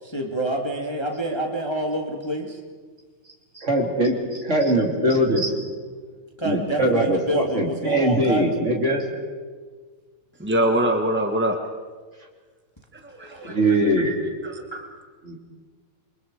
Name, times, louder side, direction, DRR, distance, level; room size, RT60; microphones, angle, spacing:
voice 1, 0.0-2.6 3.5-3.7 4.6-4.7 6.4-8.5 13.2-14.1 14.7-14.9, right 1 dB, 15° left, 1 dB, 1.9 m, -28 dB
voice 2, 3.6-5.5 6.4-9.0 13.4-14.1 15.2-15.4, right 1 dB, 30° right, 0 dB, 3.4 m, -21 dB
voice 3, 10.4-11.6 12.9-13.3 13.7-13.8 14.4-14.7, right 1 dB, 10° right, 4 dB, 0.6 m, -23 dB
28.5 x 24.0 x 4.8 m, 1.5 s
omnidirectional pair, 2.4 m